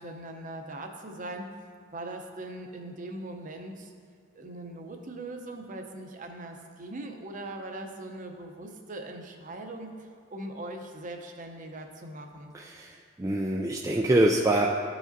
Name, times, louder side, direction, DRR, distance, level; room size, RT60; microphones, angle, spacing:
voice 1, 0.0-1.5 1.9-3.9 4.3-12.5, right 2 dB, 40° right, 4 dB, 0.7 m, -40 dB
voice 2, 12.5-14.7, right 1 dB, 15° right, -2 dB, 0.3 m, -25 dB
13.0 x 4.9 x 2.7 m, 2.1 s
head